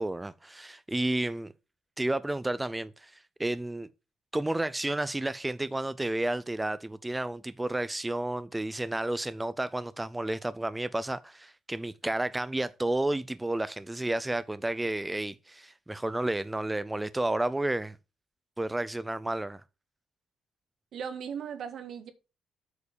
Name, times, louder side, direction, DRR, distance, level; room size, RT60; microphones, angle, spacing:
voice 1, 0.0-1.5 2.0-3.9 4.3-18.0 18.6-19.6, right 1 dB, 10° right, 0.5 m, -31 dB
voice 2, 20.9-22.1, right 7 dB, 65° right, 1.7 m, -37 dB
8.4 x 4.8 x 6.7 m
cardioid pair, 90°, 0 cm